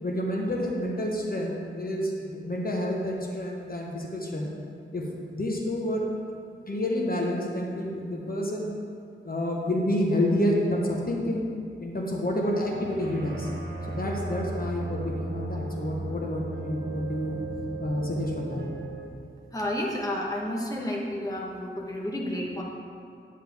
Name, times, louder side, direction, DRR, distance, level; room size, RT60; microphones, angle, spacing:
voice 1, 0.0-4.5 4.9-5.1 5.3-6.1 6.7-8.7 9.2-11.4 11.8-13.5 13.9-17.4 17.8-18.6, left 1 dB, 45° left, -1 dB, 1.2 m, -29 dB
sound 1, 12.4-19.1, right 2 dB, 55° right, 1.3 m, -36 dB
voice 2, 19.5-22.6, left 1 dB, 15° left, -2 dB, 1.2 m, -31 dB
9.8 x 9.4 x 3.6 m, 2.4 s
wide cardioid pair, 100°, 21 cm